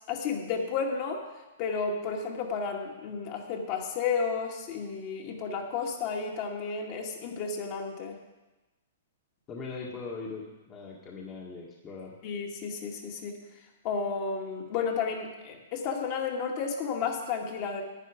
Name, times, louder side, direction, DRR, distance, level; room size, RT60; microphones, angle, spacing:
voice 1, 0.1-1.2 1.6-8.2 12.2-13.4 13.8-17.8, left 5 dB, 45° left, 0 dB, 2.0 m, -32 dB
voice 2, 9.5-12.1, left 4 dB, 25° left, -2 dB, 1.6 m, -40 dB
11.0 x 9.3 x 5.0 m, 1.1 s
hypercardioid pair, 130°, 0 cm